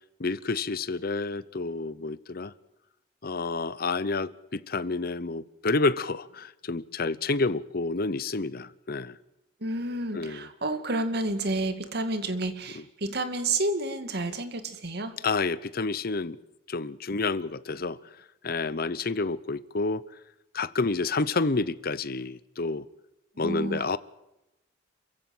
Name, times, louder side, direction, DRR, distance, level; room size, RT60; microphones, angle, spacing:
voice 1, 0.2-2.5 3.2-9.2 10.1-10.5 12.7-12.8 15.2-16.4 16.7-18.0 18.4-20.0 20.5-22.8 23.4-24.0, left 3 dB, 55° left, 0.9 m, -29 dB
voice 2, 9.6-15.2 23.4-23.9, right 2 dB, 60° right, 2.2 m, -30 dB
28.0 x 15.5 x 7.8 m
head